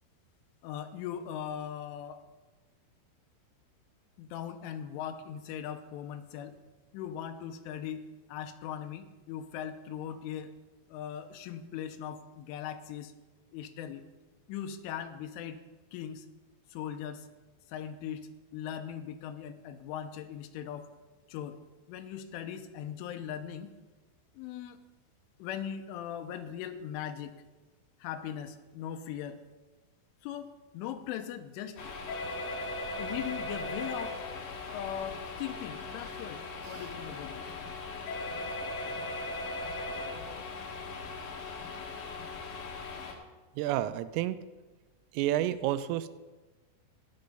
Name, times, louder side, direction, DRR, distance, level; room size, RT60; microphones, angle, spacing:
voice 1, 0.6-2.2 4.2-6.6 6.9-10.6 10.9-13.1 13.5-14.0 14.5-15.6 15.9-16.3 16.7-17.3 17.7-20.9 21.3-21.6 21.9-23.7 24.4-24.8 25.4-27.3 28.0-29.4 30.2-32.0 33.0-34.2 34.7-37.5, left 9 dB, 80° left, 8 dB, 3.2 m, -39 dB
sound 1, 31.8-43.1, left 2 dB, 55° left, 2.5 m, -38 dB
voice 2, 43.6-44.4 45.1-46.1, right 13 dB, 90° right, 14 dB, 3.3 m, -30 dB
14.5 x 10.5 x 5.4 m, 1.2 s
omnidirectional pair, 5.7 m